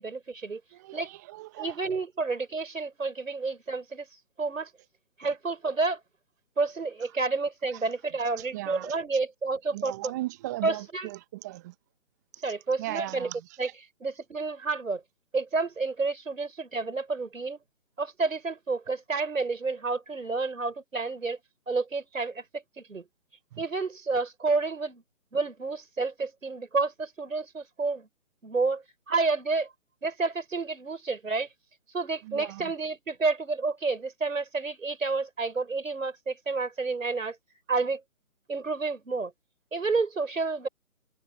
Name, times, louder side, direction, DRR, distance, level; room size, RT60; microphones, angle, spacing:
voice 1, 0.0-0.6 0.9-1.1 1.6-4.1 4.4-4.7 5.2-6.0 6.6-9.9 10.6-11.1 12.4-13.3 13.6-13.7 14.0-15.0 15.3-17.6 18.0-21.4 21.7-23.0 23.6-25.0 25.3-28.1 28.4-29.7 30.0-31.5 31.9-37.4 37.7-38.0 38.5-39.3 39.7-40.7, right 3 dB, 70° right, 6.6 m, -30 dB
voice 2, 0.7-1.9 7.7-7.9 8.4-9.0 9.7-11.7 12.4-12.5 12.8-13.7 23.5-23.6 32.2-32.7, right 18 dB, 15° right, 1.2 m, -38 dB
figure-of-eight pair, 150°, 41 cm